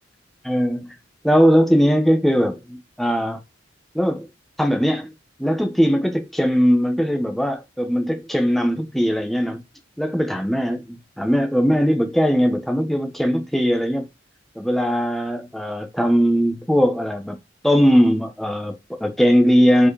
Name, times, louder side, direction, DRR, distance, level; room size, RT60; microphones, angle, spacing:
voice 1, 0.5-0.9 1.2-3.4 3.9-4.3 4.6-5.1 5.4-9.6 10.0-14.1 14.6-17.4 17.6-19.9, equal, ahead, 1.2 m, -19 dB
5.1 x 4.7 x 4.9 m
head